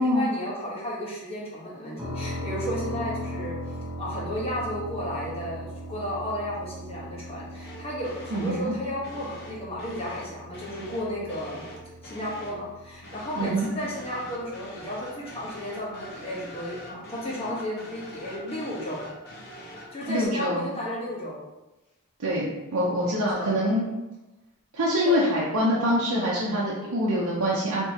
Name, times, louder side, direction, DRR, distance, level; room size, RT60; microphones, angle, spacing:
voice 1, 0.0-11.6 12.0-19.1 19.9-21.4 23.1-23.6 25.0-25.3, left 1 dB, 25° left, -5 dB, 1.1 m, -33 dB
sound 1, 2.0-15.7, equal, 10° right, 0.9 m, -39 dB
sound 2, 7.6-8.7 9.0-12.7 13.0-20.3, left 1 dB, 50° left, 0.9 m, -44 dB
voice 2, 8.3-8.8 13.4-13.7 20.1-20.7 22.2-23.9 24.7-27.9, equal, 90° right, -6 dB, 0.7 m, -25 dB
4.4 x 2.9 x 2.8 m, 1.0 s
head